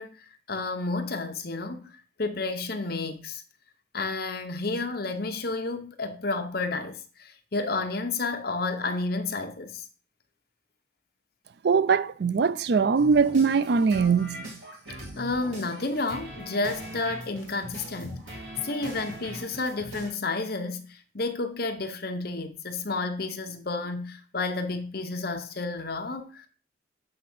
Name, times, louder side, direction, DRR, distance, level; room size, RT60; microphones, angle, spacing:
voice 1, 0.0-1.9 2.2-3.4 3.9-9.9 15.2-26.5, left 3 dB, 50° left, 0.9 m, -31 dB
voice 2, 11.6-14.6, right 5 dB, 55° right, 0.4 m, -22 dB
sound 1, 12.9-20.1, equal, 90° right, 2.7 m, -41 dB
7.7 x 3.6 x 6.0 m
head